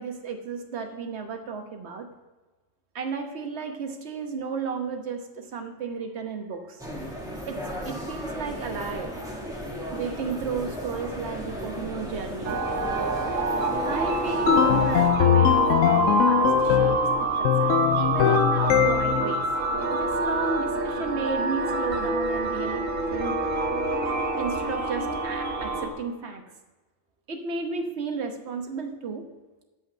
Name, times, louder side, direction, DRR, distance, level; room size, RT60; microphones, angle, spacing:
voice 1, 0.0-2.1 2.9-6.8 7.5-9.3 9.9-12.6 13.8-19.4 19.9-23.5 24.4-26.4 27.3-29.2, right 4 dB, 60° right, 5 dB, 1.3 m, -33 dB
sound 1, 6.8-15.1, equal, 5° right, 1.5 m, -35 dB
sound 2, 12.4-25.9, right 3 dB, 90° right, 1.7 m, -26 dB
sound 3, 14.5-17.1 17.4-19.3, left 10 dB, 80° left, 0.9 m, -21 dB
7.8 x 5.7 x 7.6 m, 1.2 s
omnidirectional pair, 1.3 m